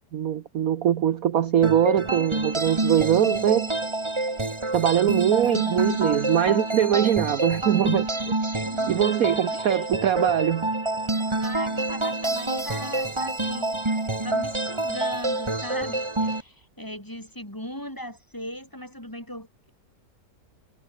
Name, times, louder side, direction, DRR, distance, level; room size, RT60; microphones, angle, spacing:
voice 1, 0.1-3.7 4.7-8.4 8.9-10.7, right 10 dB, 60° right, 1.3 m, -22 dB
sound 1, 1.6-16.4, right 2 dB, 15° right, 2.0 m, -27 dB
voice 2, 8.6-9.9 11.4-13.8 14.2-19.7, equal, 10° left, 6.0 m, -38 dB
omnidirectional pair, 1.9 m